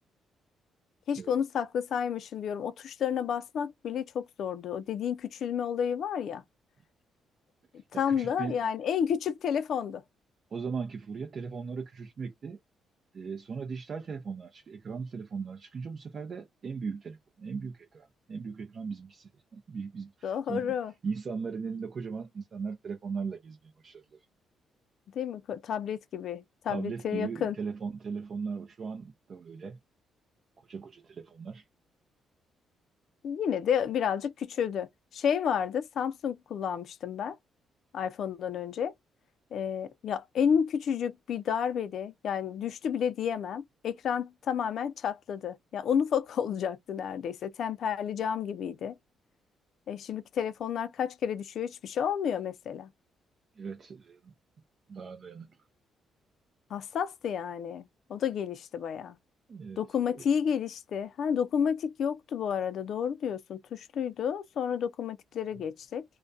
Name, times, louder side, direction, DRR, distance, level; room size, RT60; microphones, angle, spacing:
voice 1, 1.1-6.4 8.0-10.0 20.2-20.9 25.1-27.5 33.2-37.4 37.9-38.9 39.5-48.9 49.9-52.9 56.7-59.2 59.8-66.0, left 8 dB, 65° left, 0.3 m, -31 dB
voice 2, 7.9-8.6 10.5-12.6 13.1-20.7 21.0-24.3 26.7-29.8 30.6-31.7 53.6-54.3 54.9-55.6 59.5-59.8 60.1-60.2, right 5 dB, 50° right, 0.5 m, -38 dB
2.3 x 2.1 x 2.5 m
cardioid pair, 90°, 0 cm